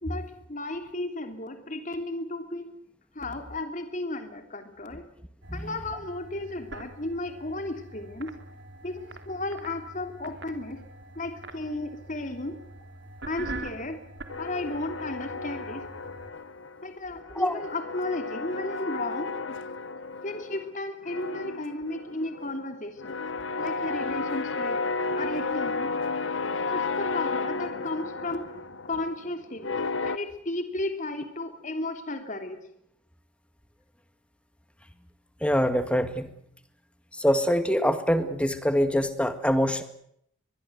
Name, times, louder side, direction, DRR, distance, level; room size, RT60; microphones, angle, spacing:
voice 1, 0.0-2.7 3.1-5.0 5.5-8.3 8.8-10.8 11.1-12.6 13.3-14.0 14.4-15.8 16.8-19.3 20.2-23.1 23.6-24.8 25.2-25.9 26.6-28.5 28.8-32.6, left 2 dB, 40° left, 6 dB, 3.0 m, -34 dB
sound 1, 5.4-16.3, right 2 dB, 60° right, 3.2 m, -44 dB
sound 2, 14.3-16.8 17.1-20.7 21.0-30.2, left 3 dB, 75° left, 1.3 m, -33 dB
voice 2, 35.4-36.3 37.1-39.8, equal, 5° left, 9 dB, 2.0 m, -24 dB
23.0 x 22.5 x 8.0 m, 0.71 s
head